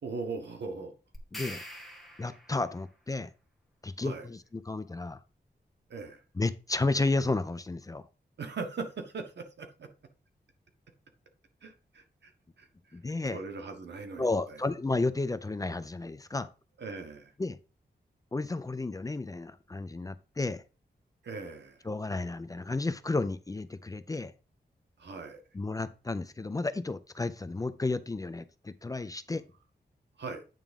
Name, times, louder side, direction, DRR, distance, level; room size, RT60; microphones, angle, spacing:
voice 1, 0.0-0.9 4.0-4.3 5.9-6.2 8.4-9.9 11.6-12.3 12.6-13.0 13.3-14.6 16.8-17.3 21.2-21.9 25.0-25.4 30.2-30.4, right 4 dB, 85° right, 1.4 m, -40 dB
sound 1, 1.1-2.7, equal, ahead, 1.6 m, -44 dB
voice 2, 1.3-1.6 2.2-3.3 3.8-5.2 6.4-8.1 12.9-13.4 14.2-16.5 17.4-17.6 18.3-20.6 21.9-24.3 25.5-29.4, left 3 dB, 20° left, 0.4 m, -32 dB
9.1 x 3.6 x 5.2 m
wide cardioid pair, 155°, 17 cm